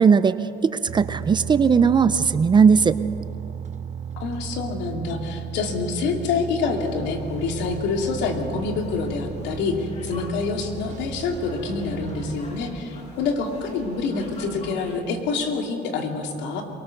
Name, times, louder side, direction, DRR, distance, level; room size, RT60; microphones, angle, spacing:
voice 1, 0.0-3.0, right 6 dB, 25° right, 14 dB, 0.6 m, -18 dB
sound 1, 0.9-12.4, right 8 dB, 40° right, 1.0 m, -35 dB
voice 2, 4.2-16.6, left 4 dB, 75° left, 3 dB, 2.8 m, -27 dB
sound 2, 6.8-15.0, left 2 dB, 40° left, 5.8 m, -43 dB
23.0 x 18.5 x 6.6 m, 2.6 s
cardioid pair, 130°, 19 cm